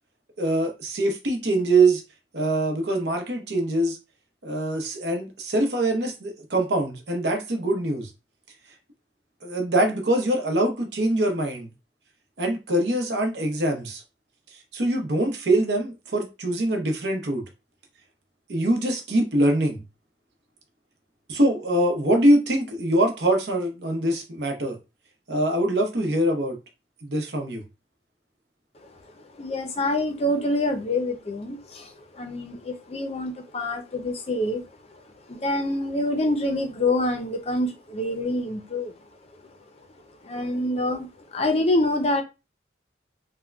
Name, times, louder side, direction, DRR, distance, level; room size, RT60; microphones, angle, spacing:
voice 1, 0.4-2.0 2.3-4.0 4.4-8.1 9.4-11.7 12.4-14.0 14.7-17.4 18.5-19.8 21.3-24.8 25.3-26.6 27.0-27.6, right 1 dB, 70° right, 0.8 m, -23 dB
voice 2, 29.2-34.6 35.3-38.9 40.2-42.2, left 1 dB, 35° left, 0.5 m, -26 dB
3.6 x 2.1 x 2.2 m
head